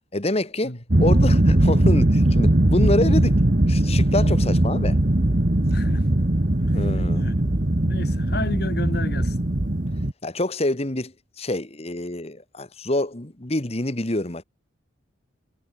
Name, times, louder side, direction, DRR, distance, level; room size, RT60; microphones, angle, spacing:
voice 1, 0.1-3.4 3.7-5.0 6.7-7.2 10.2-14.4, left 1 dB, 30° left, 1.5 m, -26 dB
sound 1, 0.9-10.1, right 1 dB, 40° right, 1.3 m, -20 dB
voice 2, 5.7-6.1 6.6-6.8 7.1-7.4 7.8-9.4, left 1 dB, 55° left, 5.6 m, -32 dB
head